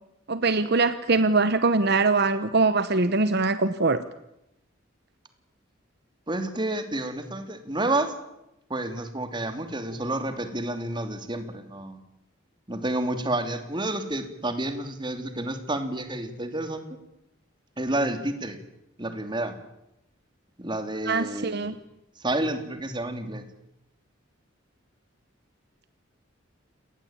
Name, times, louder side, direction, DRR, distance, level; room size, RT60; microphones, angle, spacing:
voice 1, 0.3-4.0 21.0-21.7, right 3 dB, 55° right, 12 dB, 1.1 m, -22 dB
voice 2, 6.3-8.1 8.7-12.0 12.7-16.9 17.8-18.6 19.0-19.6 20.6-21.7 22.2-23.4, right 1 dB, 25° right, 8 dB, 2.8 m, -30 dB
29.5 x 19.5 x 8.8 m, 0.87 s
head